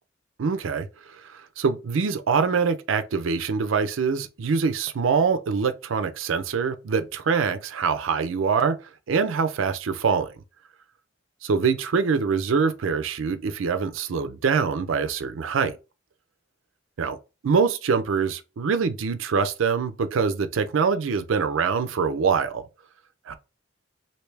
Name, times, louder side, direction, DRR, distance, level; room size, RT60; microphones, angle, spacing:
voice 1, 0.4-0.9 1.2-8.8 9.1-10.3 11.4-15.7 17.0-17.2 17.4-22.6 23.3-23.4, right 5 dB, 90° right, 0.5 m, -24 dB
3.2 x 2.7 x 3.3 m
head